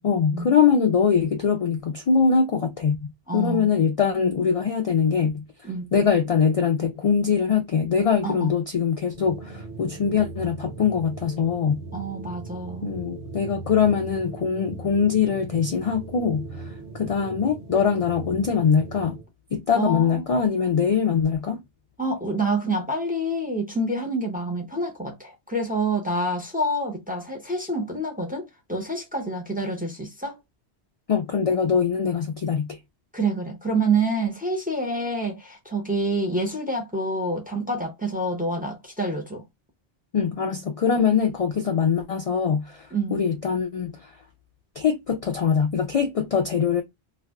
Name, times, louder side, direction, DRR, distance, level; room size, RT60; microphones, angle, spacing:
voice 1, 0.0-5.4 5.9-11.8 12.8-19.2 19.5-21.6 31.1-32.8 40.1-44.1 44.8-46.8, left 6 dB, 65° left, 0.3 m, -23 dB
voice 2, 3.3-3.7 5.6-5.9 8.2-8.5 11.9-12.9 19.7-20.2 22.0-30.4 33.1-39.4 42.9-43.2, right 2 dB, 10° right, 0.5 m, -27 dB
sound 1, 9.0-19.3, right 3 dB, 90° right, 0.9 m, -39 dB
2.5 x 2.1 x 3.4 m
omnidirectional pair, 1.1 m